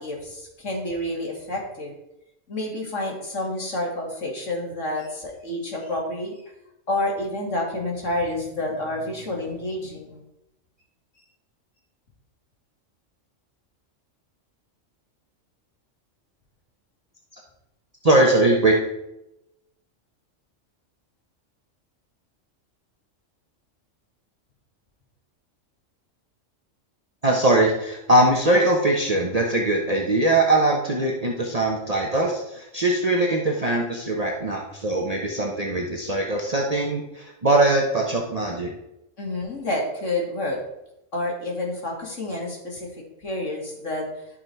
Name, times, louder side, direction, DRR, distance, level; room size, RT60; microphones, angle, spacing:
voice 1, 0.0-1.9 2.5-6.5 6.9-10.2 39.2-40.6 41.1-42.9 43.2-44.1, left 1 dB, 70° left, -1 dB, 3.0 m, -29 dB
voice 2, 18.0-18.7 27.2-38.7, right 2 dB, 30° right, -1 dB, 1.2 m, -21 dB
12.5 x 5.7 x 4.6 m, 0.87 s
omnidirectional pair, 1.3 m